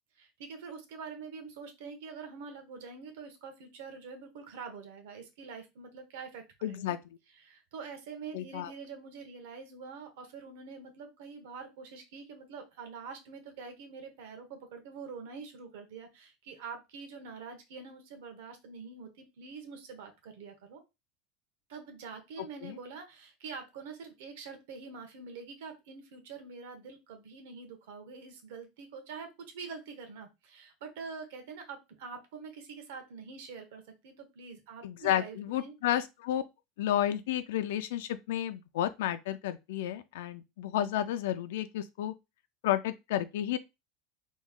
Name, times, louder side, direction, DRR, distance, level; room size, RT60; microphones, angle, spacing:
voice 1, 0.2-6.9 7.3-20.8 21.7-35.7, right 5 dB, 70° right, 1.0 m, -45 dB
voice 2, 6.6-7.0 8.3-8.7 22.6-22.8 34.8-36.4 36.8-42.1 42.6-43.6, left 11 dB, 85° left, 0.3 m, -31 dB
3.0 x 2.3 x 3.6 m
supercardioid pair, 180°, 0 cm